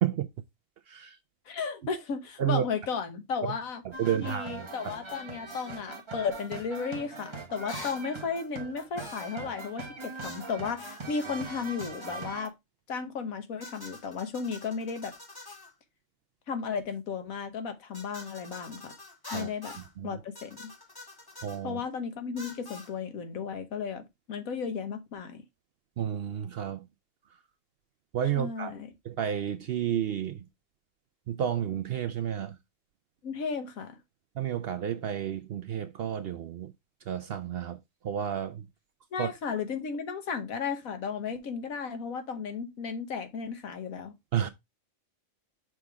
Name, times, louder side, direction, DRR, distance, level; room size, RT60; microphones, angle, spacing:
voice 1, 1.5-3.8 4.1-12.5 12.9-15.1 16.5-18.9 19.3-19.7 20.0-20.7 21.6-25.4 28.4-28.9 33.2-34.0 39.1-44.1, left 5 dB, 85° left, 1.5 m, -34 dB
voice 2, 3.8-4.7 19.3-19.5 20.0-20.2 21.4-21.8 26.0-26.9 28.1-28.7 29.0-30.5 31.3-32.6 34.4-36.7 37.1-37.8 38.0-38.7 39.2-39.3 44.3-44.5, right 9 dB, 65° right, 0.6 m, -31 dB
sound 1, 3.9-12.5, right 3 dB, 25° right, 1.0 m, -41 dB
sound 2, 5.5-5.7 7.7-8.0 9.0-9.4 10.2-10.5 10.8-11.0 11.8-12.3 13.6-15.7 17.9-19.9 20.3-21.6 22.4-22.9, left 2 dB, 15° left, 1.5 m, -46 dB
6.1 x 3.6 x 4.7 m
omnidirectional pair, 1.4 m